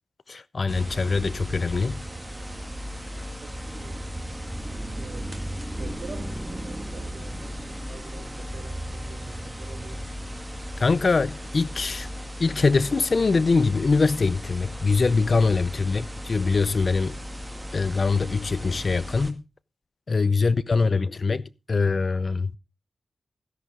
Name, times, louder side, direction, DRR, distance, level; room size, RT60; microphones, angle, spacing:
voice 1, 0.3-2.0 10.8-12.1 12.4-17.2 17.7-19.4 20.1-22.5, left 4 dB, 55° left, 0.6 m, -23 dB
sound 1, 0.7-19.3, equal, 15° right, 1.8 m, -36 dB
voice 2, 3.4-4.2 4.9-10.2 15.7-16.1 20.3-21.3, right 5 dB, 70° right, 1.9 m, -47 dB
13.0 x 11.0 x 3.7 m
cardioid pair, 45°, 0 cm